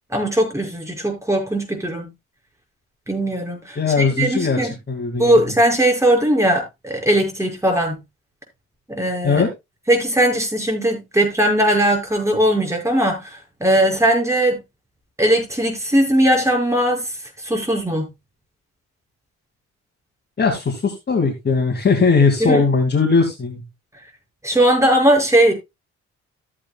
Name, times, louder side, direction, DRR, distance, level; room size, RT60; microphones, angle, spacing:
voice 1, 0.1-2.1 3.1-4.7 5.2-8.0 8.9-9.5 9.9-14.6 15.2-17.0 17.4-18.1 22.4-22.6 24.4-25.5, right 1 dB, 10° right, 6.0 m, -19 dB
voice 2, 3.8-4.6 4.9-5.3 9.2-9.5 20.4-23.6, left 4 dB, 35° left, 2.3 m, -18 dB
14.5 x 8.5 x 2.4 m
cardioid pair, 90°, 30 cm